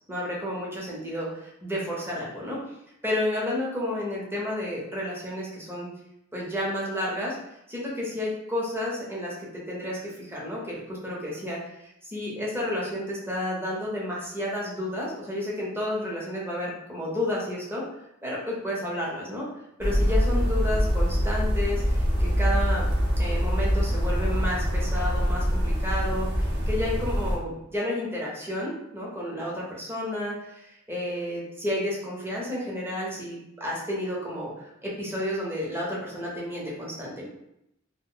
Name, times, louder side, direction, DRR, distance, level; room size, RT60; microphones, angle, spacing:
voice 1, 0.1-2.6 3.0-5.9 6.3-7.4 7.7-17.8 18.2-19.5 19.8-22.9 23.2-37.3, left 1 dB, 10° right, -5 dB, 0.8 m, -31 dB
sound 1, 19.8-27.4, equal, 55° right, 0.8 m, -24 dB
2.5 x 2.2 x 3.7 m, 0.80 s
head